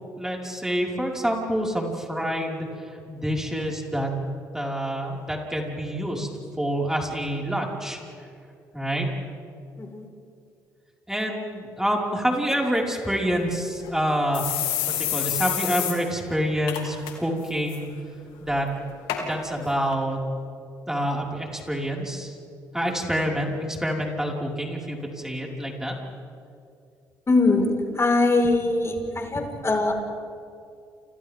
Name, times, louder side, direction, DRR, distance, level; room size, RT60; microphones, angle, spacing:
voice 1, 0.2-2.7 3.1-4.1 4.5-6.3 6.6-8.0 8.7-9.1 11.1-14.4 14.9-17.9 18.4-18.7 19.2-20.2 20.9-22.3 22.7-25.9, equal, 5° right, -2 dB, 5.7 m, -27 dB
sound 1, 13.4-13.5 13.8-13.9 14.3-16.0 16.3-16.4 16.7-17.1 17.5-17.8 18.5-18.6 19.1-19.2 19.9-20.0, left 11 dB, 75° left, 3.3 m, -27 dB
voice 2, 27.3-27.7 27.9-29.9, left 3 dB, 30° left, 2 dB, 5.4 m, -22 dB
29.5 x 28.0 x 3.9 m, 2.5 s
hypercardioid pair, 50°, 9 cm